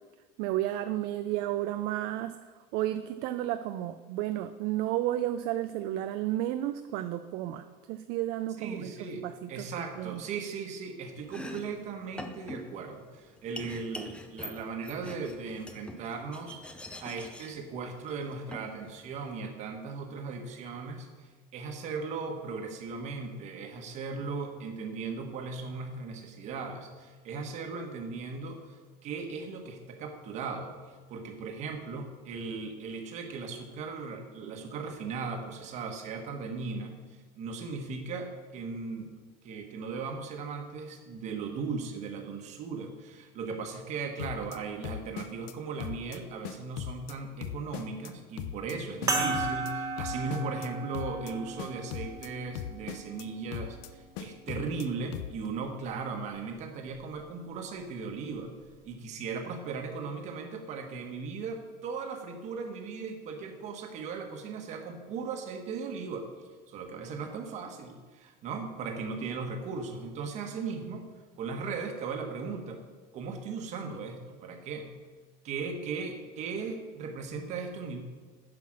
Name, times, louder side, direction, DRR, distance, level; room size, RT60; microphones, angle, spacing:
voice 1, 0.4-9.7 10.0-10.2, right 13 dB, 55° right, 10 dB, 0.4 m, -32 dB
voice 2, 8.6-16.6 17.0-30.7 31.1-37.0 37.4-39.1 39.4-58.5 58.8-66.3 66.7-71.1 71.4-72.8 73.1-75.0 75.4-78.0, right 4 dB, 40° right, 4 dB, 1.2 m, -37 dB
Domestic sounds home sounds, 11.2-19.4, left 1 dB, 5° left, 0.4 m, -45 dB
sound 1, 44.2-44.6 44.8-45.5 45.8-46.2 46.4-47.1 47.4-48.1 48.4-48.8 49.0-49.7 50.0-50.7 50.9-51.3 51.6-52.3 52.6-53.3 53.5-53.9 54.2-54.9 55.1-55.5, left 10 dB, 65° left, 0.6 m, -39 dB
sound 2, 49.1-53.9 54.7-54.8 56.9-57.0, right 3 dB, 15° right, 1.2 m, -35 dB
9.8 x 5.8 x 6.2 m, 1.4 s
cardioid pair, 175°, 19 cm